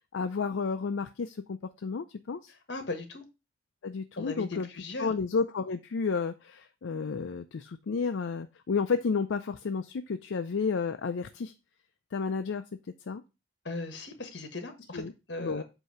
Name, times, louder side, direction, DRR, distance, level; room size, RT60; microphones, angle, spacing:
voice 1, 0.1-2.5 3.8-4.7 5.0-11.5 12.1-12.6 13.1-13.2 14.9-15.1 15.4-15.6, left 5 dB, 75° left, 8 dB, 0.4 m, -31 dB
voice 2, 2.5-3.2 4.2-5.1 13.6-15.0 15.3-15.6, left 2 dB, 60° left, 7 dB, 1.4 m, -38 dB
8.0 x 2.8 x 5.6 m, 0.27 s
head